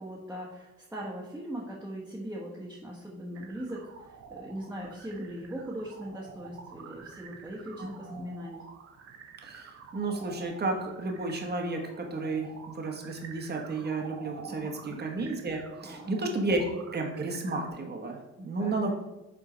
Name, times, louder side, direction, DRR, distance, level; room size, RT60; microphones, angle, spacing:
voice 1, 0.0-8.6 14.4-15.0 15.8-16.1 18.6-18.9, right 1 dB, 5° right, -5 dB, 1.3 m, -40 dB
sound 1, 3.3-17.7, right 6 dB, 50° right, 0.8 m, -49 dB
voice 2, 7.8-8.2 9.4-12.5 12.7-16.6 16.9-18.9, right 2 dB, 35° right, 2 dB, 1.3 m, -32 dB
6.0 x 3.7 x 5.1 m, 1.0 s
cardioid pair, 90°, 30 cm